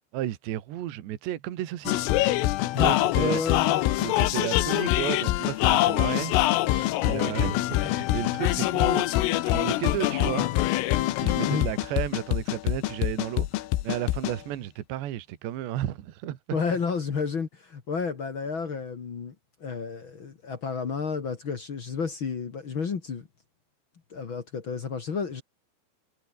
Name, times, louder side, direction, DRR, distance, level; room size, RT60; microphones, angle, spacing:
voice 1, 0.1-2.1 2.8-3.4 4.0-6.4 6.7-9.1 9.5-10.5 11.2-16.6, right 13 dB, 65° right, 3.8 m, -33 dB
sound 1, 1.9-14.4, left 16 dB, 90° left, 4.0 m, -24 dB
voice 2, 2.7-3.8 11.5-11.7 16.5-19.3 19.6-23.3 24.1-25.4, left 5 dB, 55° left, 1.4 m, -31 dB
omnidirectional pair, 5.7 m